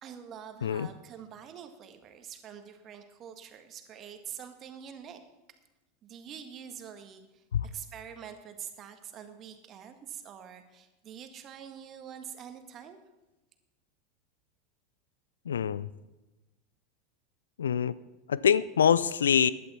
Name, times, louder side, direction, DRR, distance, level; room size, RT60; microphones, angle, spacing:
voice 1, 0.0-5.2 6.0-13.0, right 8 dB, 35° right, 7 dB, 1.7 m, -45 dB
voice 2, 15.5-15.9 17.6-17.9 18.3-19.5, left 8 dB, 75° left, 19 dB, 0.4 m, -25 dB
16.0 x 11.0 x 4.3 m, 1.0 s
figure-of-eight pair, 85°, 0 cm